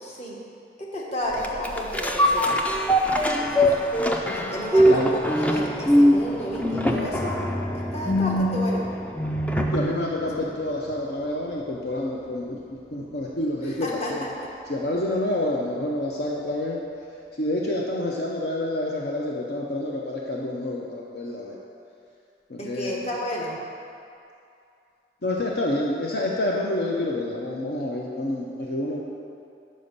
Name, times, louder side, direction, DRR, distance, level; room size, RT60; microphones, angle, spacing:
voice 1, 0.0-0.4 0.8-2.6 3.4-3.8 4.4-7.4 7.7-8.8 10.4-10.5 13.6-14.1 14.4-14.5 22.6-23.6, equal, 35° left, -3 dB, 1.0 m, -32 dB
sound 1, 1.4-10.0 10.4-10.5, equal, 10° left, 0.3 m, -22 dB
voice 2, 9.7-12.6 12.9-14.3 14.7-16.8 17.4-21.6 22.5-23.0 25.2-29.0, left 1 dB, 60° left, -3 dB, 0.6 m, -28 dB
5.5 x 5.1 x 6.6 m, 2.5 s
head